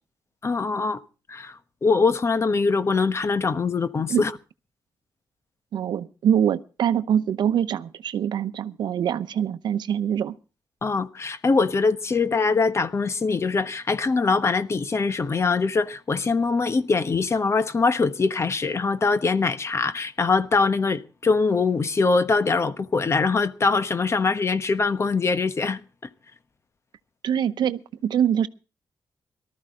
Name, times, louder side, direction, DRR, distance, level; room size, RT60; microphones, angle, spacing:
voice 1, 0.4-1.0 1.3-1.5 1.8-4.3 10.8-25.8, left 4 dB, 40° left, 1.1 m, -23 dB
voice 2, 5.7-10.3 27.2-28.5, right 9 dB, 75° right, 0.8 m, -24 dB
18.5 x 13.5 x 3.7 m
cardioid pair, 95°, 8 cm